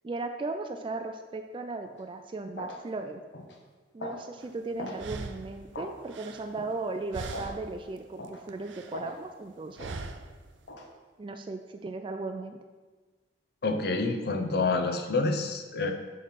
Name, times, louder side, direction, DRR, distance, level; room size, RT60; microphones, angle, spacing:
voice 1, 0.0-3.2 3.9-10.0 11.2-12.6, right 3 dB, 25° right, 6 dB, 0.3 m, -36 dB
sound 1, 1.8-2.0 2.6-2.8 3.3-3.6 4.0-4.2 4.8-5.0 5.7-6.0 6.6-6.7 7.3-7.6 8.2-8.4 8.9-9.2 9.8-10.0 10.7-10.9, left 1 dB, 75° left, 1.0 m, -40 dB
sound 2, 4.4-4.5 5.0-6.9 7.1-7.8 8.1-9.1 9.8-10.4, right 3 dB, 80° right, 0.5 m, -41 dB
voice 2, 13.6-15.9, left 3 dB, 60° left, 5 dB, 0.6 m, -28 dB
5.7 x 5.1 x 5.7 m, 1.3 s
head